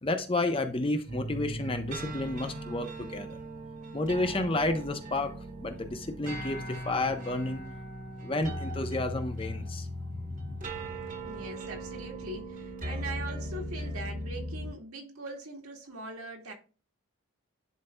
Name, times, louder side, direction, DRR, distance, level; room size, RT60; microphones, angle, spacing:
voice 1, 0.0-3.4 3.9-7.6 8.2-9.9 10.1-10.7, left 2 dB, 25° left, 0.6 m, -31 dB
sound 1, 1.1-14.7, equal, 35° right, 1.1 m, -38 dB
voice 2, 11.3-16.5, right 2 dB, 75° right, 1.8 m, -41 dB
11.0 x 4.1 x 2.2 m
head